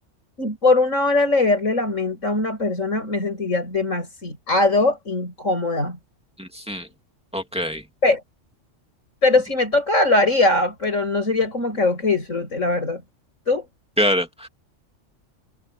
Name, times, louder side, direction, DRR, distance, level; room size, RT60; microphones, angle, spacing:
voice 1, 0.4-6.0 8.0-8.2 9.2-13.0 13.5-13.6, left 2 dB, 90° left, 7.9 m, -21 dB
voice 2, 6.4-6.9 7.3-7.8 14.0-14.5, equal, 5° right, 2.3 m, -24 dB
omnidirectional pair, 1.3 m